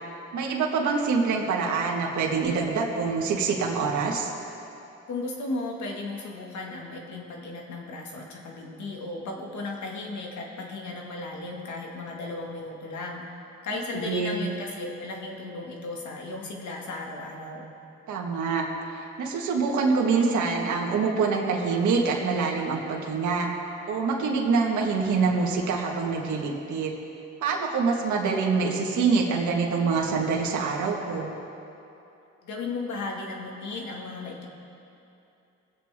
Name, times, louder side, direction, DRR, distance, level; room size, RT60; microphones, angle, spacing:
voice 1, 0.3-4.3 14.0-14.4 18.1-18.7 18.9-23.5 23.9-26.9 27.4-31.3, right 4 dB, 75° right, -1 dB, 1.7 m, -25 dB
voice 2, 5.1-13.2 13.6-17.7 32.4-34.5, left 3 dB, 70° left, 0 dB, 2.1 m, -35 dB
22.5 x 8.1 x 3.7 m, 2.8 s
cardioid pair, 90°, 30 cm